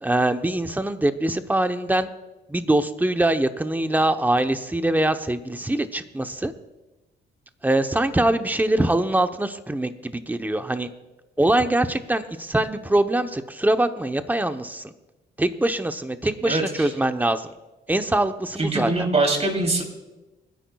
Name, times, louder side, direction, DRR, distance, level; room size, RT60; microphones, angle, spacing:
voice 1, 0.0-2.1 2.5-6.5 7.6-10.9 11.4-14.9 15.4-17.5 17.9-19.1, right 1 dB, 10° right, 8 dB, 0.9 m, -23 dB
voice 2, 16.4-16.9 18.6-19.8, right 2 dB, 30° right, 2 dB, 3.1 m, -23 dB
28.5 x 10.5 x 2.4 m, 1.1 s
cardioid pair, 90°, 20 cm